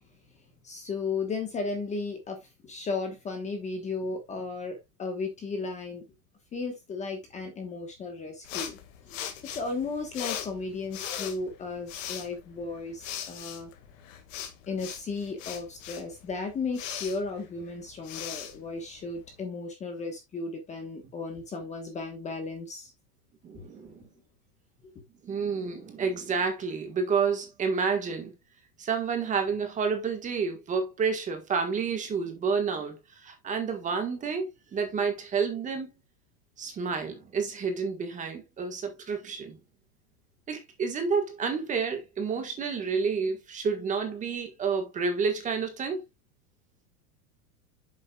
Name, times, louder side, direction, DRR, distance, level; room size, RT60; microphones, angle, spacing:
voice 1, 0.6-6.0 6.5-8.8 9.1-13.7 14.7-22.9, left 4 dB, 15° left, 1.2 m, -35 dB
sound 1, 8.4-19.4, left 9 dB, 55° left, 2.0 m, -40 dB
voice 2, 23.4-24.0 25.2-28.3 28.8-35.9 36.6-39.6 40.5-46.0, right 5 dB, 15° right, 1.5 m, -30 dB
9.2 x 7.1 x 2.3 m
supercardioid pair, 165°, 46 cm